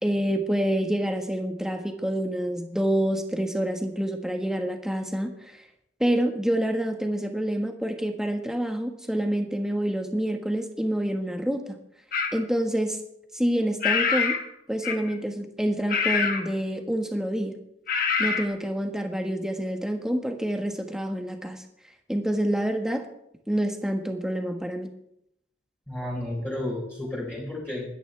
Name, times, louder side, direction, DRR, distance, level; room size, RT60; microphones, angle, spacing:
voice 1, 0.0-5.6 6.0-11.8 12.3-13.0 13.3-14.3 14.7-17.6 18.2-21.6 22.1-23.1 23.5-24.9, right 1 dB, 5° right, 4 dB, 1.4 m, -27 dB
sound 1, 12.1-12.4 13.8-14.5 14.8-15.2 15.9-16.5 17.9-18.5, left 5 dB, 50° left, 1.5 m, -25 dB
voice 2, 25.9-27.9, left 1 dB, 15° left, -7 dB, 4.2 m, -32 dB
21.0 x 10.0 x 3.3 m, 0.77 s
head